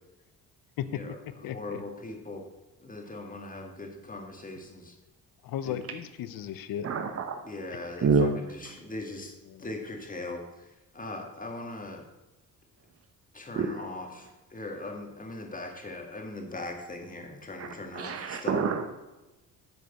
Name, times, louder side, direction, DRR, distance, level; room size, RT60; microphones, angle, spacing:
voice 1, 0.9-2.4 2.8-4.9 5.6-5.8 7.5-10.7 10.9-12.0 13.3-18.6, left 2 dB, 20° left, 1.9 m, -40 dB
voice 2, 1.4-1.8 5.4-6.9 9.5-9.6, left 10 dB, 65° left, 0.8 m, -35 dB
voice 3, 6.8-7.4 8.0-8.3 13.6-13.8 17.6-17.7 17.9-18.8, right 5 dB, 40° right, 0.9 m, -27 dB
9.0 x 4.9 x 6.7 m
cardioid pair, 80°, 36 cm